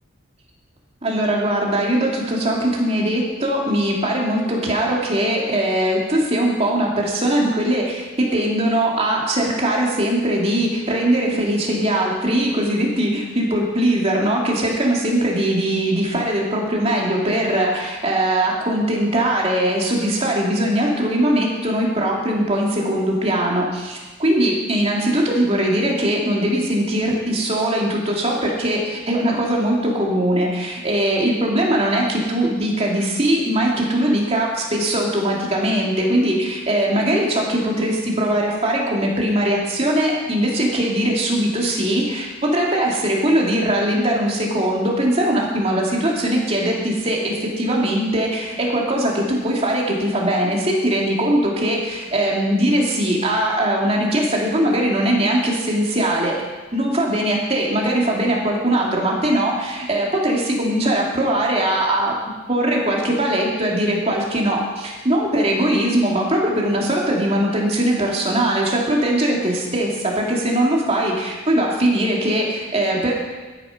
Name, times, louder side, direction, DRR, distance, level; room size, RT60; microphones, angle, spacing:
voice 1, 1.0-56.3 56.7-62.1 62.5-73.1, right 1 dB, 30° right, -2 dB, 2.7 m, -20 dB
13.0 x 10.0 x 5.9 m, 1.3 s
head